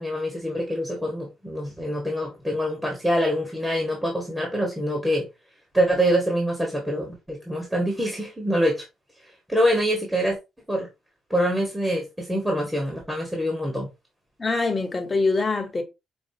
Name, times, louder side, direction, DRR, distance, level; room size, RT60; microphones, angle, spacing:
voice 1, 0.0-5.3 5.7-8.8 9.5-10.4 10.7-10.9 11.3-13.9, equal, 10° right, 1.3 m, -25 dB
voice 2, 14.4-15.8, left 3 dB, 25° left, 1.0 m, -24 dB
5.3 x 2.4 x 2.6 m
cardioid pair, 90°, 0 cm